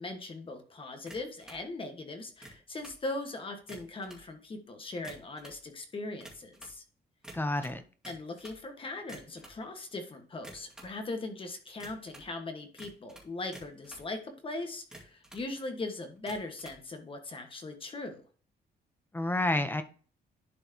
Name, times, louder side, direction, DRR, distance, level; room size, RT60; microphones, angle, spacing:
voice 1, 0.0-6.8 8.0-18.2, left 2 dB, 30° left, 5 dB, 1.5 m, -40 dB
sound 1, 1.1-1.6 2.3-3.0 3.6-4.3 4.9-5.6 6.2-6.8 7.2-8.6 9.0-9.6 10.3-11.0 11.8-12.3 12.8-14.1 14.8-15.5 16.2-16.8, right 1 dB, 5° right, 2.1 m, -51 dB
voice 2, 7.3-7.8 19.1-19.8, left 1 dB, 10° left, 10 dB, 0.7 m, -29 dB
11.0 x 4.6 x 2.9 m, 0.40 s
cardioid pair, 150°, 17 cm